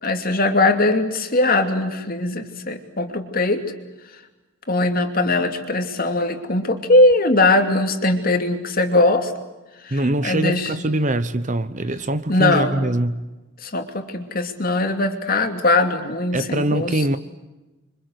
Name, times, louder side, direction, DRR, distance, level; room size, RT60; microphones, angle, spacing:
voice 1, 0.0-3.6 4.7-9.3 9.8-10.7 12.3-12.8 13.6-17.0, left 2 dB, 40° left, 2.8 m, -20 dB
voice 2, 9.9-13.3 16.3-17.2, right 1 dB, 35° right, 0.9 m, -23 dB
28.0 x 25.0 x 8.1 m
head